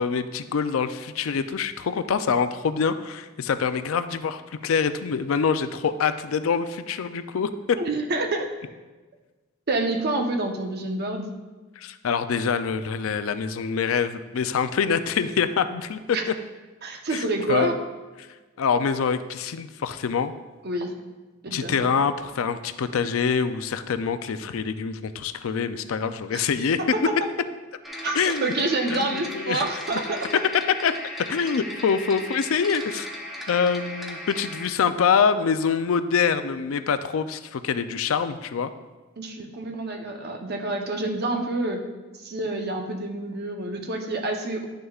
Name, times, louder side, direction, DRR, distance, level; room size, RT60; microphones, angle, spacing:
voice 1, 0.0-7.5 11.8-16.2 17.1-17.8 18.6-20.3 21.5-26.8 28.1-28.5 28.9-29.6 29.9-30.0 30.8-30.9 31.3-33.1 33.5-38.7, left 6 dB, 75° left, 11 dB, 0.4 m, -25 dB
voice 2, 7.8-8.5 9.7-11.3 16.1-16.2 16.8-17.7 20.6-20.9 21.4-21.9 26.3-26.4 26.9-27.1 28.0-30.3 39.2-41.8 42.2-44.7, right 2 dB, 50° right, 4 dB, 0.8 m, -28 dB
sound 1, 27.8-34.7, left 1 dB, ahead, 0.8 m, -36 dB
10.5 x 6.5 x 2.4 m, 1.2 s
head